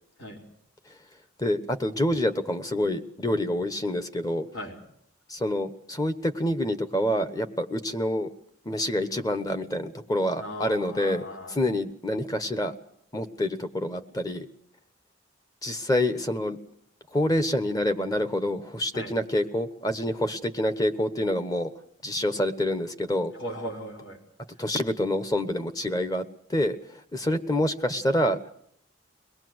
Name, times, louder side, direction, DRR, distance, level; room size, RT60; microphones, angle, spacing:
voice 1, 1.4-4.5 5.3-8.3 8.6-12.7 13.1-14.5 15.6-16.6 17.1-21.7 22.0-23.3 24.6-26.2 26.5-26.8 27.1-28.4, left 1 dB, 20° left, 10 dB, 1.1 m, -27 dB
voice 2, 10.4-11.6 18.9-19.1 23.4-24.2, equal, 70° left, 1 dB, 5.0 m, -37 dB
23.0 x 19.0 x 7.9 m, 0.70 s
head